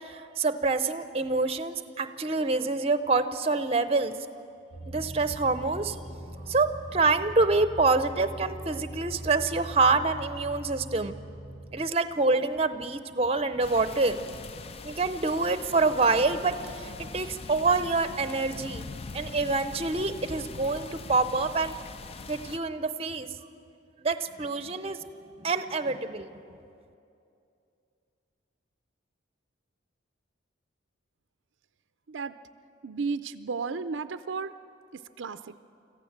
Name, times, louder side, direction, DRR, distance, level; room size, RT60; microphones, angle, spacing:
voice 1, 0.0-4.1 4.9-6.0 6.5-11.2 11.7-14.2 14.8-18.8 19.1-21.7 22.3-23.3 24.0-25.0 25.4-26.3, right 3 dB, 30° right, 11 dB, 0.6 m, -26 dB
sound 1, 4.7-11.7, right 1 dB, 75° left, 6.8 m, -41 dB
sound 2, 13.6-22.6, left 4 dB, 30° left, 0.4 m, -42 dB
voice 2, 32.8-34.5 34.9-35.5, right 4 dB, 70° right, 11 dB, 0.5 m, -33 dB
25.5 x 15.0 x 7.3 m, 2.6 s
head